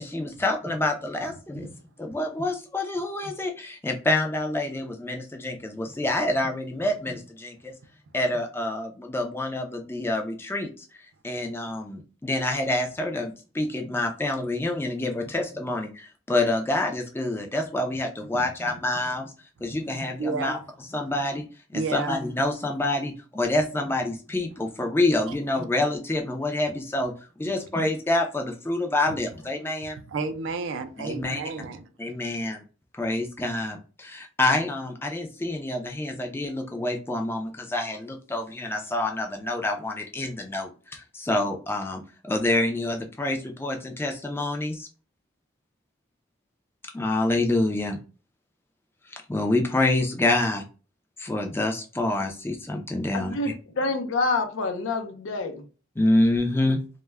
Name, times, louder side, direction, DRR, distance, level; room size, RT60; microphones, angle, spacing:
voice 1, 0.0-1.7 2.0-7.7 8.1-10.8 11.2-19.3 19.6-20.6 20.9-21.4 21.7-27.1 27.4-30.0 31.0-31.4 32.0-32.6 32.9-44.9 46.9-48.0 49.3-50.6 51.2-53.3 56.0-56.8, left 2 dB, 10° left, 0.3 m, -27 dB
voice 2, 20.2-20.5 21.7-22.1 25.3-25.4 27.4-27.5 29.1-29.2 30.1-31.9, right 4 dB, 75° right, 0.4 m, -31 dB
voice 3, 53.1-55.7, left 3 dB, 85° left, 0.5 m, -27 dB
2.2 x 2.0 x 3.2 m
head